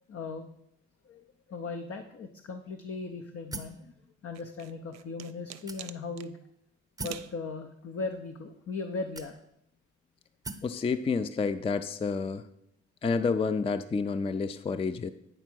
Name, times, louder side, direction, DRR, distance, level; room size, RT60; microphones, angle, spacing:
voice 1, 0.1-0.5 1.0-1.2 1.5-3.9 4.2-6.4 7.0-9.3, left 3 dB, 50° left, 5 dB, 0.7 m, -38 dB
sound 1, 3.5-3.9 4.6-4.7 5.7-6.2 7.0-7.3 8.2-8.3 9.1-9.7 10.4-10.8, right 3 dB, 15° right, 0.8 m, -41 dB
sound 2, 4.3-6.3 7.0-7.4, right 11 dB, 65° right, 0.5 m, -44 dB
voice 2, 10.6-12.4 13.0-15.1, left 4 dB, 20° left, 11 dB, 0.3 m, -29 dB
9.1 x 3.6 x 6.1 m, 0.75 s
cardioid pair, 80°, 30 cm